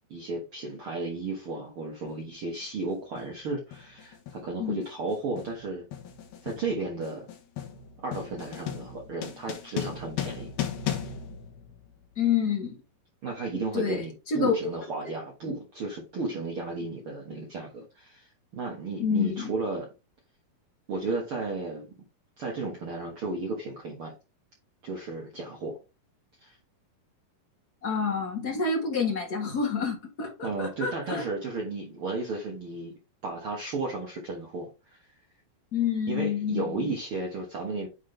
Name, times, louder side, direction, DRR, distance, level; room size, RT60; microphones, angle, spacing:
voice 1, 0.1-5.8 6.4-7.3 8.0-10.5 13.2-19.9 20.9-21.9 22.4-24.1 24.8-25.8 26.4-26.6 30.4-32.9 33.2-35.1 36.1-37.9, right 3 dB, 55° right, 1.7 m, -34 dB
sound 1, 2.1-2.2 3.2-3.4 3.7-12.3, left 9 dB, 85° left, 3.1 m, -37 dB
voice 2, 12.2-12.8 13.7-14.6 15.0-15.1 19.0-19.5 27.8-31.2 35.7-36.9, left 6 dB, 60° left, 1.0 m, -28 dB
9.8 x 3.7 x 3.3 m
omnidirectional pair, 4.2 m